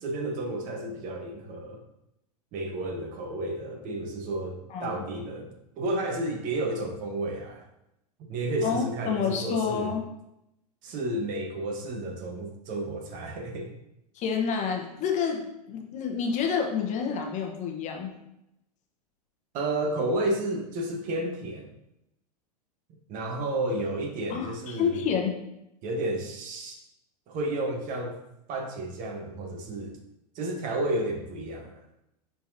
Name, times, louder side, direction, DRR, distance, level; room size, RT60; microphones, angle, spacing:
voice 1, 0.0-1.8 2.5-7.7 8.2-9.9 10.8-13.7 19.5-21.7 23.1-25.0 25.8-26.8 27.3-28.2 28.5-30.0 30.3-31.8, right 1 dB, 40° right, 3 dB, 1.1 m, -31 dB
voice 2, 8.6-10.1 14.1-18.1 24.3-25.4, left 6 dB, 35° left, 2 dB, 1.0 m, -29 dB
10.0 x 3.8 x 2.7 m, 0.86 s
hypercardioid pair, 105°, 20 cm